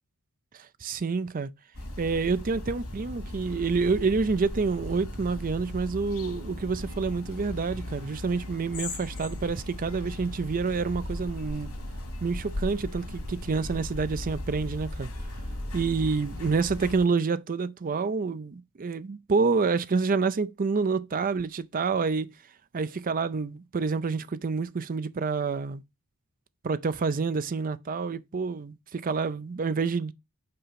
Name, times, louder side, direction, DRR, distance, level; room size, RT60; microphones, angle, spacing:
voice 1, 0.8-1.5 2.0-11.7 12.2-15.1 15.7-22.3 22.7-25.8 26.6-30.1, right 4 dB, 40° right, 0.5 m, -28 dB
sound 1, 1.7-17.1, left 1 dB, 90° left, 2.4 m, -37 dB
5.6 x 4.9 x 5.8 m
head